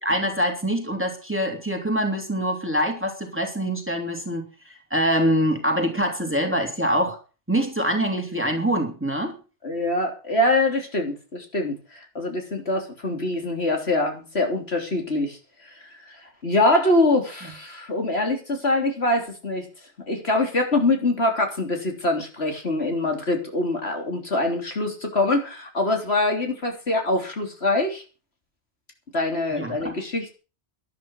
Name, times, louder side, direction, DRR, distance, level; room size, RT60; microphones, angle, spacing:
voice 1, 0.0-7.2 7.5-9.3 29.5-30.0, equal, 10° right, 3 dB, 3.2 m, -24 dB
voice 2, 9.6-15.4 16.4-19.7 20.1-28.0 29.1-30.4, left 2 dB, 65° left, 3 dB, 3.7 m, -24 dB
12.0 x 11.5 x 6.1 m, 0.34 s
omnidirectional pair, 1.2 m